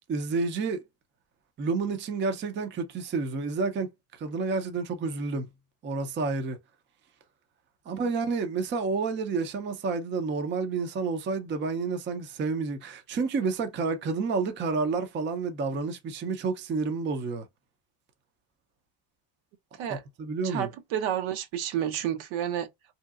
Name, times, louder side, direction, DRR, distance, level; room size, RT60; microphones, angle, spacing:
voice 1, 0.1-0.8 1.6-3.9 4.2-5.5 5.8-6.6 7.9-17.5 19.9-20.7, right 4 dB, 25° right, 0.4 m, -30 dB
voice 2, 20.4-22.7, right 10 dB, 70° right, 0.7 m, -30 dB
3.0 x 2.8 x 2.3 m
cardioid pair, 140°, 50 cm